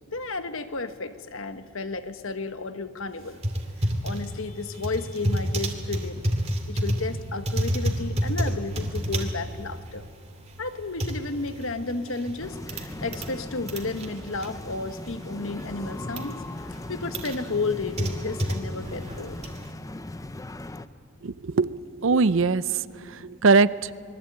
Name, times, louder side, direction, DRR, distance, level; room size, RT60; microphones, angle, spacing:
voice 1, 0.1-3.4 3.8-6.2 6.7-10.0 10.6-19.4, left 3 dB, 60° left, 10 dB, 1.2 m, -32 dB
sound 1, 3.2-13.4 13.6-15.3 15.6-16.3 16.7-19.7, equal, 30° right, 2.5 m, -30 dB
sound 2, 12.4-20.9, left 1 dB, 15° left, 0.6 m, -38 dB
voice 2, 21.2-22.8 23.2-23.9, right 4 dB, 60° right, 17 dB, 0.5 m, -21 dB
25.0 x 21.5 x 8.8 m, 2.4 s
head